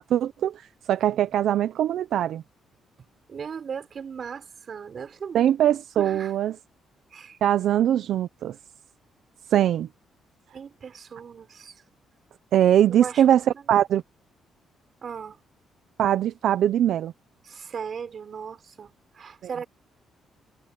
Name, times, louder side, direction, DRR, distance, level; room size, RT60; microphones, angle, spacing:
voice 1, 0.0-2.4 5.3-6.6 7.4-8.6 9.5-9.9 12.5-14.0 16.0-17.1, right 11 dB, 75° right, 0.8 m, -22 dB
voice 2, 3.3-6.3 7.1-7.4 10.5-11.8 12.9-13.4 13.7-13.8 15.0-15.4 17.4-19.7, right 6 dB, 50° right, 5.7 m, -38 dB
cardioid pair, 90°, 0 cm